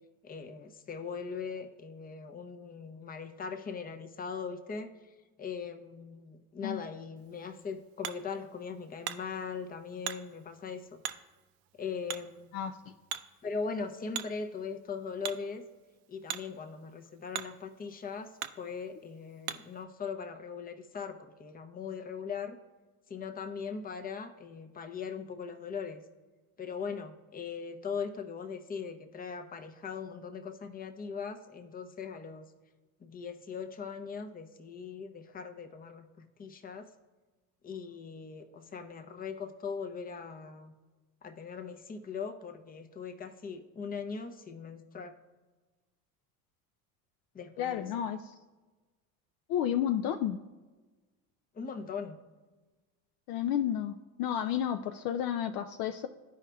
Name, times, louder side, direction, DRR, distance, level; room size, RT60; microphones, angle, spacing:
voice 1, 0.2-4.9 5.4-11.0 11.8-12.5 13.4-15.7 16.1-22.6 23.1-26.0 26.6-32.4 33.0-36.9 37.6-40.7 41.2-45.2 47.3-47.9 51.5-52.2, left 5 dB, 20° left, 6 dB, 0.7 m, -40 dB
Hammer, 7.2-19.8, right 11 dB, 55° right, 0.6 m, -45 dB
voice 2, 47.6-48.2 49.5-50.4 53.3-56.1, left 10 dB, 55° left, 8 dB, 0.5 m, -31 dB
12.5 x 4.9 x 2.3 m, 1.3 s
supercardioid pair, 90°, 44 cm